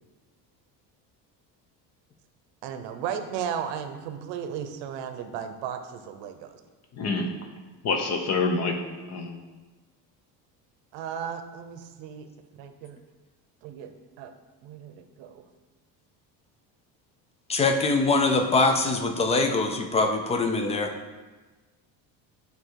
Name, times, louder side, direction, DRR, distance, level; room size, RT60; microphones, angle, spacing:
voice 1, 2.6-6.6 10.9-12.3 12.6-13.0 13.6-13.9 14.2-14.3 14.6-15.4, right 8 dB, 75° right, 8 dB, 0.8 m, -35 dB
voice 2, 7.0-7.3 7.8-8.7 9.1-9.4, left 4 dB, 35° left, 4 dB, 0.8 m, -26 dB
voice 3, 17.5-20.9, left 3 dB, 15° left, 5 dB, 0.3 m, -23 dB
8.9 x 3.5 x 4.6 m, 1.2 s
cardioid pair, 150°, 44 cm